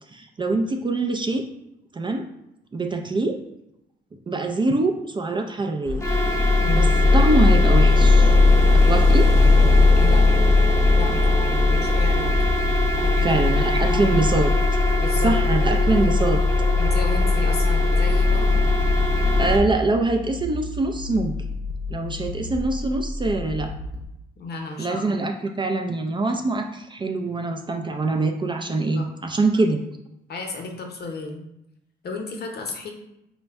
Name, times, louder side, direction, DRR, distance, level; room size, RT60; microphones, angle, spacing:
voice 1, 0.1-1.4 1.9-2.2 2.7-3.4 4.3-6.0 6.8-6.9 7.1-8.3 8.7-9.3 13.2-14.5 15.2-16.4 19.4-21.4 21.9-23.7 24.8-29.8, right 2 dB, 25° right, 4 dB, 0.4 m, -24 dB
sound 1, 5.9-19.6, left 3 dB, 15° left, 0.7 m, -18 dB
voice 2, 6.6-7.0 10.0-10.4 11.0-12.4 12.9-13.4 13.8-14.2 15.0-15.3 16.8-18.7 24.4-25.1 28.9-29.1 30.3-31.4 32.0-32.9, left 3 dB, 55° left, 3 dB, 0.8 m, -33 dB
sound 2, 12.1-24.0, left 3 dB, 60° right, 0.8 m, -33 dB
4.1 x 2.1 x 3.4 m, 0.84 s
cardioid pair, 90°, 20 cm